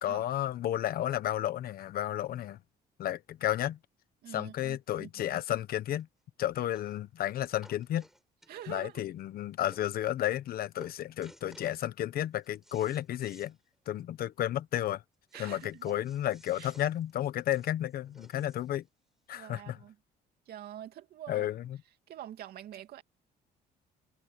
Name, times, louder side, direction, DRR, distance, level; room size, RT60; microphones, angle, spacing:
voice 1, 0.0-2.6 3.0-3.8 4.3-6.1 6.4-8.0 8.7-13.5 13.9-15.0 15.4-18.8 19.3-19.8 21.3-21.8, left 12 dB, 60° left, 1.1 m, -32 dB
voice 2, 4.2-5.4 8.5-9.0 15.3-15.9 16.5-16.7 19.3-20.0 20.5-21.5 22.1-23.0, right 11 dB, 65° right, 2.8 m, -46 dB
sound 1, 6.0-6.1 6.7-7.0 7.3-8.9 9.4-9.5 9.7-9.9 10.2-10.5 10.8-11.8 12.2-13.5 13.9-14.0 14.3-14.4 15.3-18.8 19.6-19.7, equal, ahead, 7.6 m, -57 dB
cardioid pair, 110°, 17 cm